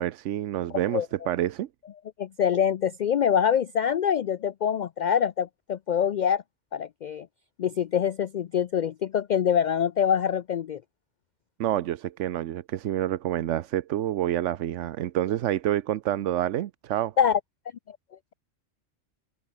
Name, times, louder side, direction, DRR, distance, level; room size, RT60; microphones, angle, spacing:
voice 1, 0.0-1.7 11.6-17.1, right 12 dB, 90° right, 1.0 m, -28 dB
voice 2, 2.2-6.4 6.7-7.3 7.6-10.8 17.2-17.4 17.9-18.0, left 8 dB, 60° left, 0.5 m, -25 dB
open air
omnidirectional pair, 1.2 m